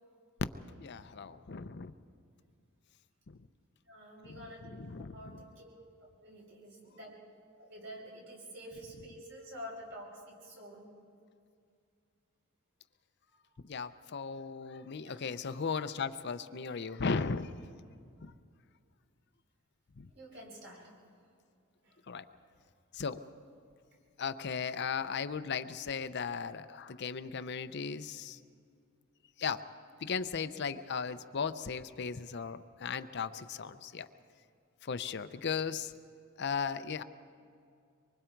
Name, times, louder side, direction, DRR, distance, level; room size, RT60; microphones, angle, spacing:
voice 1, 0.8-1.9 3.3-3.4 4.3-5.4 13.6-17.6 18.2-18.3 20.0-20.1 22.1-22.3 22.9-23.2 24.2-28.4 29.4-29.7 30.0-34.1 34.8-35.9 36.4-37.0, left 5 dB, 55° left, 11 dB, 0.6 m, -37 dB
voice 2, 3.9-4.7 5.1-5.7 6.2-7.1 7.6-10.9 15.0-15.3 20.1-20.8 21.8-22.0, equal, 55° right, -2 dB, 6.0 m, -48 dB
25.0 x 24.0 x 4.6 m, 2.3 s
head